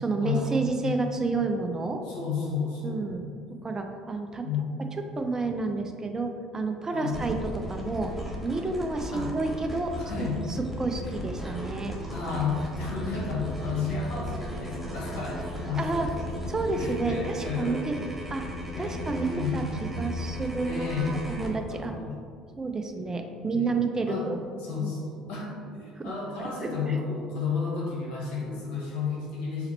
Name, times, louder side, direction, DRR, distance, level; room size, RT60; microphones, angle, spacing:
voice 1, 0.0-2.0 2.8-3.2 3.6-4.5 5.2-8.1 8.4-10.3 10.8-12.0 15.8-16.1 16.5-17.9 18.3-18.4 18.8-19.6 20.0-21.9 22.6-24.4 24.8-24.9 26.0-26.1 26.4-27.0, right 3 dB, 20° right, 4 dB, 0.4 m, -30 dB
voice 2, 2.0-3.2 4.4-4.9 6.9-7.2 9.1-9.3 10.0-10.4 11.0-11.1 12.1-16.2 16.8-17.8 18.7-19.6 20.6-21.2 21.7-22.2 23.5-23.7 24.1-24.3 24.6-29.7, left 5 dB, 60° left, -4 dB, 1.1 m, -32 dB
sound 1, 7.1-21.5, equal, ahead, 0.9 m, -36 dB
4.1 x 2.9 x 4.3 m, 2.2 s
figure-of-eight pair, 55°, 3 cm